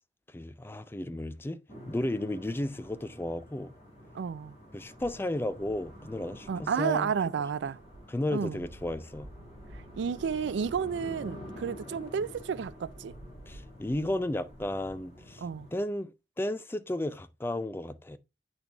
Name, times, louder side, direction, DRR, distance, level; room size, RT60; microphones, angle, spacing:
voice 1, 0.3-1.6 1.9-3.7 4.7-7.1 8.1-9.3 13.5-15.4 15.7-18.2, left 1 dB, 10° left, 0.4 m, -33 dB
sound 1, 1.7-15.8, equal, 35° left, 3.1 m, -48 dB
voice 2, 4.1-4.5 6.5-7.8 8.3-8.6 10.0-13.1 15.4-15.7, right 6 dB, 65° right, 0.3 m, -31 dB
8.7 x 4.0 x 3.3 m
head